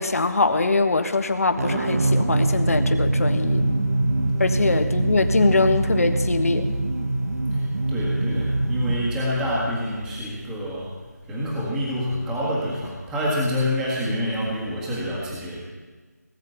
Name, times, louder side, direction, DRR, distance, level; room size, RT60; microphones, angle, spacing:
voice 1, 0.0-3.8 4.4-6.8, left 3 dB, 55° left, 8 dB, 1.3 m, -22 dB
sound 1, 1.6-10.3, right 2 dB, 55° right, 1.0 m, -24 dB
voice 2, 7.5-10.9 11.3-15.6, left 1 dB, 5° right, -5 dB, 1.7 m, -27 dB
18.5 x 7.2 x 8.4 m, 1.4 s
figure-of-eight pair, 165°, 9 cm